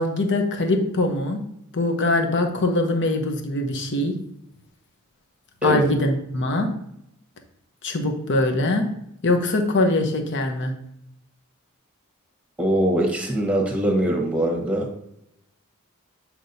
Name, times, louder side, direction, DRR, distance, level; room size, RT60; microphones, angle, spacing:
voice 1, 0.0-1.4 1.7-4.1 5.6-6.7 7.8-8.9 9.2-10.7, left 2 dB, 55° left, 4 dB, 0.9 m, -22 dB
voice 2, 12.6-14.9, right 1 dB, 5° right, 0 dB, 1.3 m, -22 dB
8.3 x 4.5 x 2.7 m, 0.78 s
head